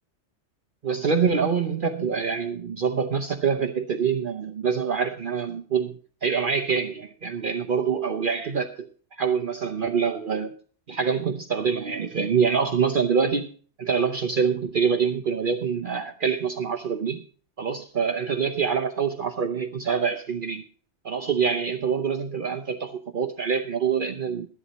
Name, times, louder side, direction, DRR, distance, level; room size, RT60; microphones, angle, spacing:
voice 1, 0.8-6.0 6.2-8.9 9.2-10.6 10.9-13.5 13.8-17.2 17.6-20.6 21.0-24.5, right 6 dB, 50° right, 5 dB, 0.9 m, -25 dB
12.5 x 11.0 x 4.1 m, 0.42 s
omnidirectional pair, 1.2 m